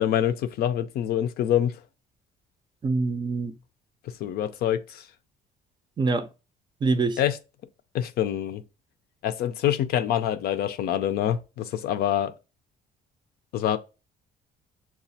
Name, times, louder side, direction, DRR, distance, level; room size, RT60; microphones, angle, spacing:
voice 1, 0.0-1.7 4.2-5.0 7.2-7.4 7.9-8.6 9.2-12.3 13.5-13.8, left 11 dB, 65° left, 0.5 m, -25 dB
voice 2, 2.8-3.5 6.0-6.3 6.8-7.2, right 3 dB, 25° right, 0.5 m, -24 dB
5.8 x 2.3 x 2.7 m
cardioid pair, 110°, 17 cm